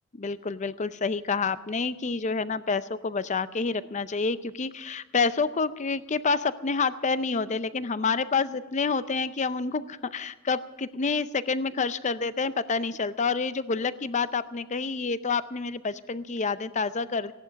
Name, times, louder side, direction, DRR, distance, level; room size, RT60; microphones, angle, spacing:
voice 1, 0.1-17.3, left 4 dB, 35° left, 14 dB, 0.6 m, -28 dB
16.0 x 11.0 x 6.4 m, 1.1 s
head